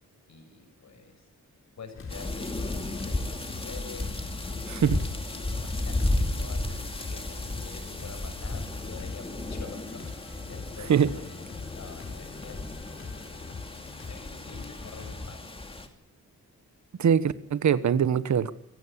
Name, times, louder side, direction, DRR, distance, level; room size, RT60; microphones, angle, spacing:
voice 1, 0.3-1.3 1.8-4.3 5.4-11.4 11.7-13.6 14.1-15.5, left 4 dB, 65° left, 8 dB, 6.3 m, -47 dB
sound 1, 1.9-15.4, left 4 dB, 45° left, 3.9 m, -43 dB
sound 2, 2.1-15.9, left 2 dB, 20° left, 2.6 m, -34 dB
voice 2, 4.7-5.0 10.9-11.1 17.0-18.5, right 8 dB, 70° right, 15 dB, 1.3 m, -23 dB
25.5 x 17.0 x 8.6 m, 0.80 s
wide cardioid pair, 145°, 30 cm